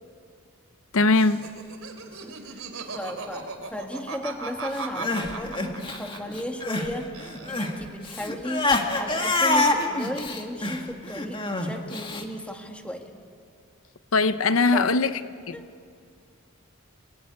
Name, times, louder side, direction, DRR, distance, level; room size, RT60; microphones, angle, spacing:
voice 1, 0.9-1.5 14.1-15.2 15.5-15.6, left 3 dB, 70° left, 0.7 m, -20 dB
Laughter, 1.1-6.9 7.1-7.9, right 4 dB, 75° right, 3.3 m, -38 dB
voice 2, 2.0-2.6 2.9-8.7 8.9-13.1 14.7-15.1 15.5-15.7, equal, 5° left, 2.0 m, -35 dB
Crying sobbing, 4.8-6.9 7.2-12.2, left 2 dB, 25° left, 1.9 m, -26 dB
29.0 x 19.5 x 9.5 m
head